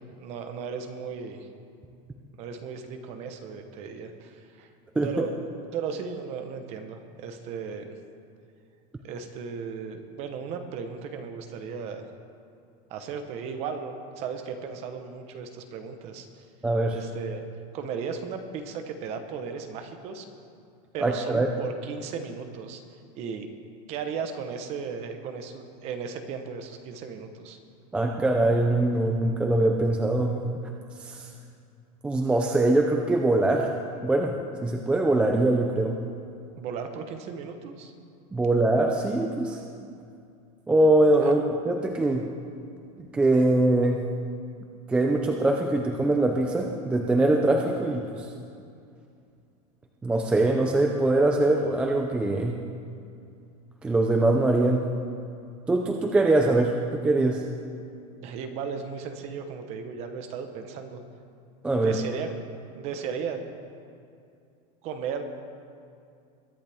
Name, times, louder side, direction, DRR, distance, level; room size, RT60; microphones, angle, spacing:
voice 1, 0.1-1.5 2.4-4.7 5.0-5.3 5.7-7.9 9.0-12.1 12.9-16.4 16.9-17.4 17.7-20.2 20.9-22.8 23.1-23.5 23.9-27.6 36.6-37.9 41.2-41.3 58.2-61.0 61.8-62.3 62.7-63.4 64.8-65.2, right 6 dB, 30° right, 6 dB, 1.0 m, -36 dB
voice 2, 16.6-17.0 21.0-21.5 27.9-30.4 31.0-31.3 32.0-33.7 34.0-34.3 34.6-36.0 38.3-39.6 40.7-42.3 43.0-44.0 44.9-48.3 50.0-52.6 53.8-54.9 55.7-57.4 61.6-62.0, right 2 dB, 5° right, 2 dB, 0.3 m, -23 dB
22.0 x 10.5 x 3.5 m, 2.4 s
supercardioid pair, 175°, 20 cm